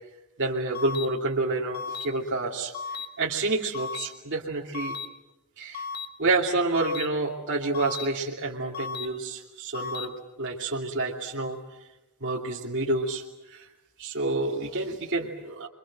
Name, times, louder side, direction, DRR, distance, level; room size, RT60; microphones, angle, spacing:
voice 1, 0.4-2.7 3.2-5.0 5.6-5.8 6.2-10.1 10.4-11.6 12.2-13.7 14.0-15.7, right 2 dB, 55° right, -3 dB, 2.8 m, -28 dB
sound 1, 0.7-1.1 1.7-2.1 2.7-3.1 3.7-4.1 4.7-5.1 5.7-6.1 6.7-7.1 7.7-8.1 8.7-9.1 9.7-10.1, left 5 dB, 45° left, 1.8 m, -34 dB
28.5 x 24.0 x 7.6 m, 0.97 s
head